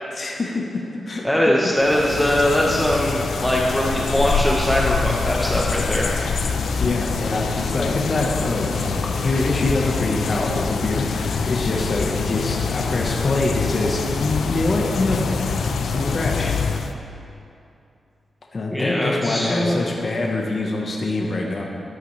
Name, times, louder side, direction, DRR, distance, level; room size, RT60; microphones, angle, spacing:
voice 1, 0.1-1.3 6.7-15.2 15.9-16.6 18.5-21.6, left 2 dB, 45° left, -1 dB, 1.1 m, -24 dB
voice 2, 1.2-6.2 18.7-19.8, left 1 dB, 5° left, -3 dB, 0.9 m, -21 dB
sound 1, 1.8-16.9, left 5 dB, 85° left, 0.6 m, -25 dB
14.0 x 10.0 x 3.2 m, 2.6 s
wide cardioid pair, 120°, 0 cm